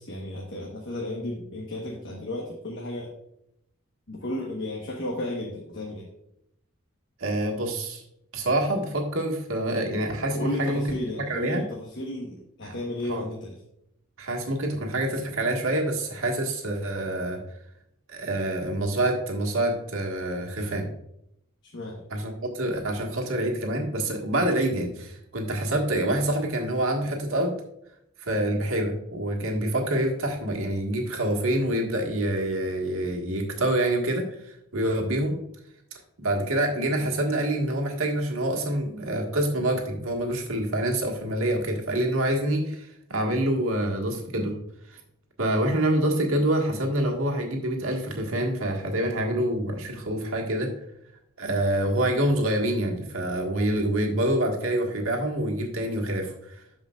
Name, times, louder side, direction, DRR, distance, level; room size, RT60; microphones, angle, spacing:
voice 1, 0.0-3.1 4.1-6.1 10.3-13.6 21.7-22.0 29.4-29.6, left 1 dB, 55° left, -2 dB, 1.2 m, -34 dB
voice 2, 7.2-8.0 8.3-10.8 11.3-11.6 12.6-12.7 13.1-13.2 14.2-17.4 18.1-20.9 22.1-27.5 28.2-35.3 36.2-44.5 44.9-45.0 45.4-50.7 51.4-56.6, right 1 dB, 75° right, 1 dB, 1.6 m, -26 dB
12.5 x 5.1 x 2.4 m, 0.78 s
head